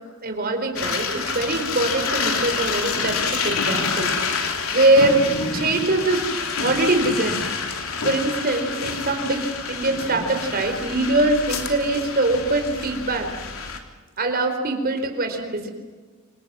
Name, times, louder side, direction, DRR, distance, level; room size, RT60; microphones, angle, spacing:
voice 1, 0.2-4.1 4.7-5.2 5.5-6.3 6.6-7.5 8.0-9.4 9.7-13.3 14.2-15.7, right 2 dB, 45° right, 6 dB, 4.1 m, -22 dB
sound 1, 0.8-13.8, left 5 dB, 75° left, 3.3 m, -27 dB
28.5 x 26.5 x 6.2 m, 1.4 s
head